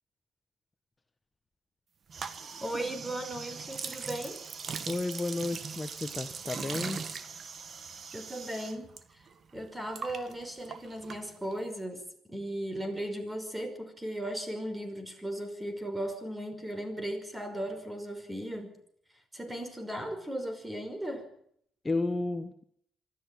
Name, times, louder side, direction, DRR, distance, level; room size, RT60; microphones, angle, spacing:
sound 1, 2.1-9.0 9.3-11.7, right 5 dB, 50° right, 1.8 m, -40 dB
voice 1, 2.6-4.4 8.1-8.9 9.5-18.8 19.3-21.3, right 1 dB, 10° right, 8 dB, 5.4 m, -37 dB
voice 2, 4.9-7.0 21.8-22.5, left 2 dB, 20° left, 7 dB, 1.4 m, -32 dB
24.5 x 14.0 x 9.1 m, 0.71 s
cardioid pair, 90°, 0 cm